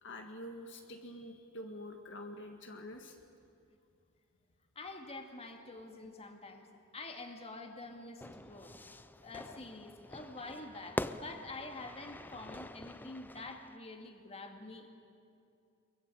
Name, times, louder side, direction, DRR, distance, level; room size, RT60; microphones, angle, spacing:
voice 1, 0.0-3.2, left 1 dB, 60° left, 4 dB, 1.7 m, -46 dB
voice 2, 4.8-8.7 9.2-14.9, left 2 dB, 30° left, 4 dB, 2.2 m, -47 dB
Fire / Fireworks, 8.2-13.8, left 1 dB, 10° left, 0.5 m, -44 dB
23.5 x 22.5 x 9.0 m, 2.5 s
head